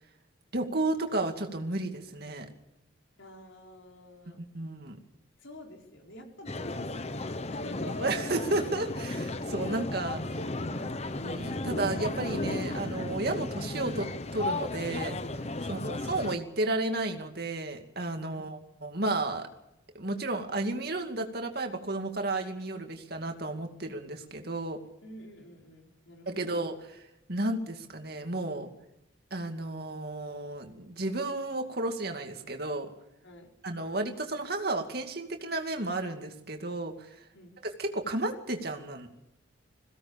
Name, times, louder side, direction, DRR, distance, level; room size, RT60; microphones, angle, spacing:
voice 1, 0.5-2.5 4.4-5.0 8.0-10.2 11.2-15.2 15.6-19.5 19.9-24.8 26.3-27.0 27.3-28.7 29.3-32.9 33.6-37.1 37.8-39.1, right 2 dB, 50° right, 5 dB, 2.4 m, -33 dB
voice 2, 3.2-4.4 5.4-8.2 10.7-11.2 18.2-18.5 25.0-26.7 33.2-33.5 37.3-37.6, left 1 dB, 80° left, 1 dB, 5.0 m, -48 dB
sound 1, 6.5-16.4, left 2 dB, 35° left, 0.9 m, -34 dB
22.0 x 17.0 x 7.1 m, 0.88 s
head